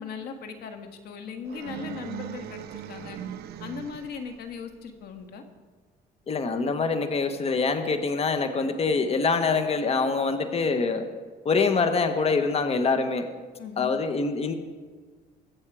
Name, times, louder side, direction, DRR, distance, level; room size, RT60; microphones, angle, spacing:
voice 1, 0.0-3.2 3.6-5.4 13.6-13.9, left 6 dB, 70° left, 6 dB, 1.7 m, -38 dB
sound 1, 1.4-4.3, right 10 dB, 70° right, 0.8 m, -39 dB
voice 2, 6.3-11.1 11.4-13.3 13.8-14.5, left 4 dB, 35° left, 8 dB, 1.3 m, -25 dB
22.5 x 7.6 x 4.9 m, 1.5 s
cardioid pair, 110°, 17 cm